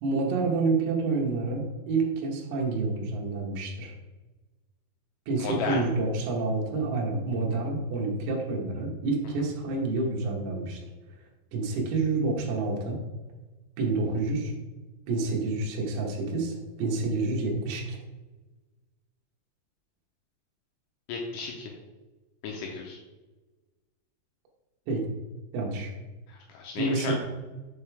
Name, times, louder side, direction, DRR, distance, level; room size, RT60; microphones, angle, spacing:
voice 1, 0.0-3.9 5.3-10.8 11.5-13.0 13.8-14.5 15.1-18.0 24.9-25.1 25.5-25.9 26.8-27.1, right 3 dB, 70° right, -1 dB, 2.9 m, -28 dB
voice 2, 5.4-5.8 21.1-21.7 22.4-23.0 26.3-27.1, left 5 dB, 80° left, 0 dB, 2.7 m, -34 dB
6.8 x 5.4 x 3.4 m, 1.2 s
omnidirectional pair, 5.2 m